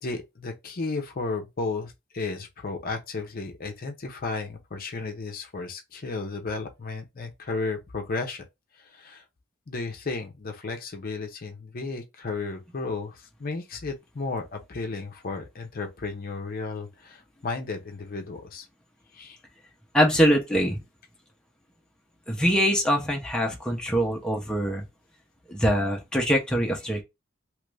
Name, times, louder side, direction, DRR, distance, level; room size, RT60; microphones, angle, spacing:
voice 1, 0.0-8.4 8.8-9.2 9.7-18.7 19.1-19.4, left 3 dB, 45° left, 0.6 m, -33 dB
voice 2, 19.9-20.8 22.3-24.8 25.5-27.0, equal, 5° left, 0.6 m, -23 dB
3.0 x 2.5 x 3.2 m
head